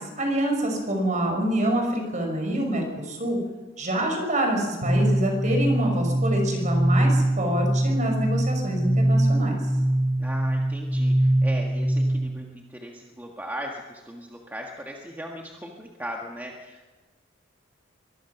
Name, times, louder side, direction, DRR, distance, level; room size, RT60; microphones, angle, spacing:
voice 1, 0.0-3.4 3.8-9.6, right 1 dB, 40° right, 3 dB, 5.8 m, -26 dB
sound 1, 4.8-12.4, right 1 dB, 85° right, 6.8 m, -23 dB
voice 2, 10.2-16.9, equal, 10° right, 0 dB, 1.7 m, -38 dB
24.0 x 20.5 x 5.9 m, 1.3 s
head